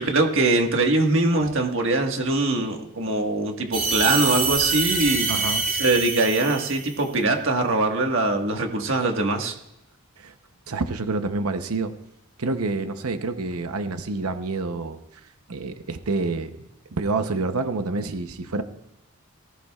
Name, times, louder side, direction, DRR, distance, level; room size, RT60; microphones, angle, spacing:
voice 1, 0.0-5.4 5.7-9.5, right 2 dB, 60° right, 3 dB, 1.6 m, -22 dB
sound 1, 3.7-7.0, right 4 dB, 40° right, 3.0 m, -25 dB
voice 2, 5.3-5.7 10.2-10.3 10.7-12.0 12.4-15.0 15.5-18.6, right 3 dB, 85° right, 9 dB, 0.8 m, -28 dB
19.0 x 14.5 x 2.4 m, 0.84 s
head